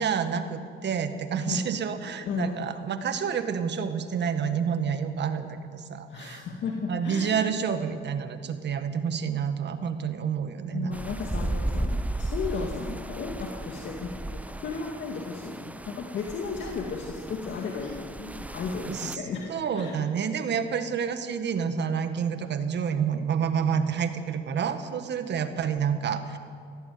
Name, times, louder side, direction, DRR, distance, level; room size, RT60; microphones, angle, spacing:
voice 1, 0.0-6.4 6.9-10.9 18.8-19.2 19.5-26.4, right 7 dB, 60° right, 9 dB, 1.7 m, -29 dB
voice 2, 2.2-2.7 6.1-7.3 10.7-19.9, left 5 dB, 70° left, 1 dB, 2.2 m, -34 dB
sound 1, 10.9-19.2, right 1 dB, 5° right, 0.7 m, -35 dB
17.5 x 15.5 x 9.5 m, 2.2 s
cardioid pair, 90°, 20 cm